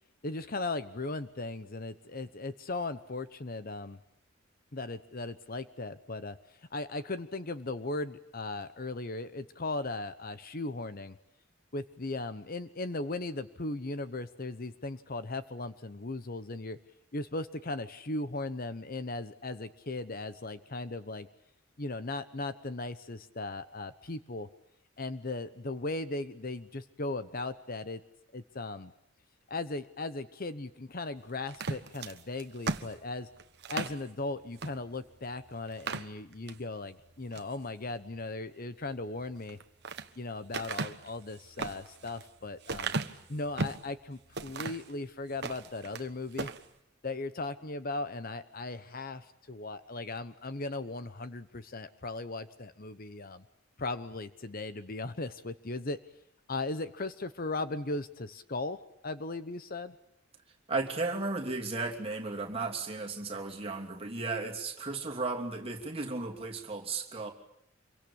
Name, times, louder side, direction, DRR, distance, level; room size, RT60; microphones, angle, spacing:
voice 1, 0.2-4.0 4.7-6.4 6.7-11.2 11.7-16.8 17.1-21.3 21.8-24.5 25.0-28.0 28.3-28.9 29.5-33.3 33.7-39.6 40.2-42.9 43.3-46.5 47.0-53.4 53.8-56.0 56.5-58.8 59.0-59.9, left 2 dB, 45° left, 12 dB, 1.0 m, -37 dB
sound 1, 31.5-34.0 34.6-34.8 35.1-35.2 35.7-36.6 37.1-37.6 39.4-40.1 40.5-43.9 44.3-44.9 45.3-46.1 46.3-46.6, right 3 dB, 55° right, 1.3 m, -36 dB
voice 2, 60.7-67.3, right 3 dB, 30° right, 1 dB, 2.9 m, -35 dB
26.5 x 23.5 x 8.7 m, 0.74 s
head